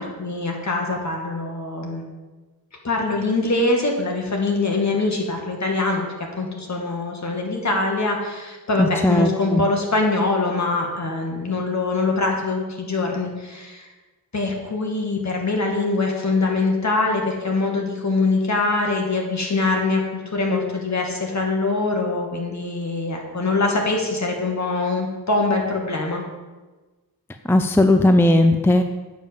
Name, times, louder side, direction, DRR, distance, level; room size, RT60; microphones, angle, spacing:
voice 1, 0.0-2.0 2.8-6.0 6.4-13.9 14.3-26.2, left 3 dB, 45° left, 1 dB, 2.2 m, -23 dB
voice 2, 8.8-9.6 27.5-28.8, left 1 dB, 5° left, 7 dB, 0.5 m, -17 dB
8.9 x 5.7 x 7.1 m, 1.2 s
wide cardioid pair, 85°, 37 cm